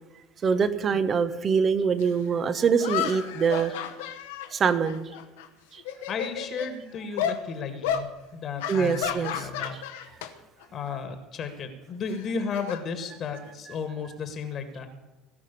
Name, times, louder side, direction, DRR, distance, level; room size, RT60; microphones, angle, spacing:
voice 1, 0.4-3.7 4.5-5.1 5.7-5.8 8.7-9.5, right 6 dB, 35° right, 12 dB, 1.2 m, -24 dB
sound 1, 2.0-2.1 2.8-5.5 5.8-6.7 7.2-7.4 7.8-8.1 8.6-10.3 10.6-10.9 12.1-13.5, left 9 dB, 65° left, 1.1 m, -32 dB
voice 2, 6.1-10.1 10.7-14.9, left 5 dB, 40° left, 8 dB, 1.7 m, -34 dB
18.0 x 6.0 x 10.0 m, 1.1 s
figure-of-eight pair, 65°, 0 cm